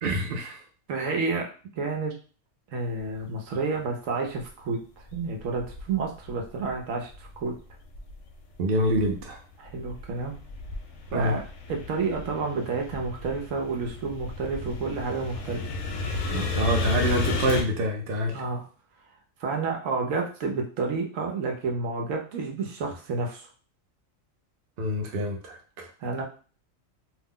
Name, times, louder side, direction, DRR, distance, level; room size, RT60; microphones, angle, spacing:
voice 1, 0.0-0.6 8.6-9.4 11.1-11.4 16.3-18.4 24.8-25.9, equal, 55° right, 2 dB, 0.7 m, -26 dB
voice 2, 0.9-1.5 1.8-2.1 2.7-4.8 5.1-7.5 9.6-10.3 11.1-11.4 11.7-15.7 18.3-18.7 19.4-23.5 26.0-26.2, right 4 dB, 75° right, 1 dB, 1.0 m, -30 dB
sound 1, 4.4-4.5 5.1-6.7 7.1-8.4 8.8-17.6, left 3 dB, 75° left, 1.0 m, -33 dB
2.7 x 2.0 x 3.6 m, 0.38 s
omnidirectional pair, 1.4 m